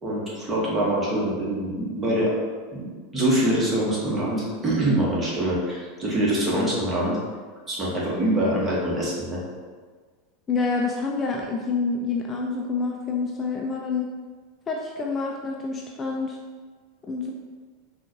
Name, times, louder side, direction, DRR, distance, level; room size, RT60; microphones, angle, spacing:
voice 1, 0.0-2.3 2.7-2.9 3.1-7.2 7.7-9.4, right 1 dB, 20° right, -5 dB, 1.3 m, -24 dB
voice 2, 10.5-14.1 14.7-16.4 17.0-17.3, left 4 dB, 25° left, 0 dB, 0.4 m, -27 dB
4.2 x 2.4 x 3.0 m, 1.5 s
figure-of-eight pair, 85°, 0 cm